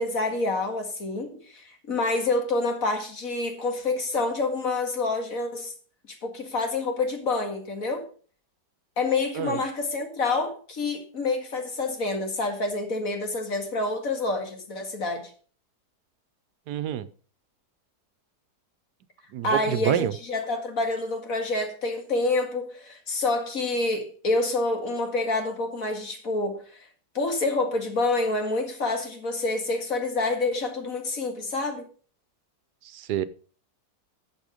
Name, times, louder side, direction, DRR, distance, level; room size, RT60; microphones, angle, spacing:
voice 1, 0.0-5.7 6.1-8.1 9.0-15.3 19.4-26.9 27.1-31.8, left 2 dB, 55° left, 2.4 m, -27 dB
voice 2, 16.7-17.1 19.3-20.1 32.9-33.2, right 10 dB, 80° right, 1.3 m, -27 dB
11.0 x 7.3 x 5.2 m
omnidirectional pair, 1.7 m